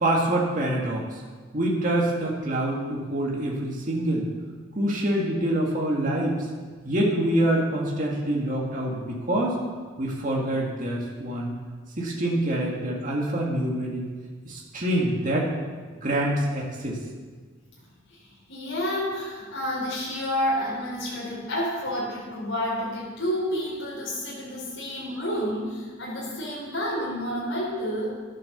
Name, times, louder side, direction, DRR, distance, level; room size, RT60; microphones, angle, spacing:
voice 1, 0.0-1.1 1.5-4.3 4.8-6.4 6.9-9.6 10.0-11.6 12.0-14.0 14.5-15.5 16.0-17.0, right 1 dB, 40° right, -3 dB, 2.0 m, -25 dB
voice 2, 18.1-28.1, equal, 65° left, -6 dB, 4.2 m, -30 dB
12.0 x 9.8 x 6.7 m, 1.5 s
head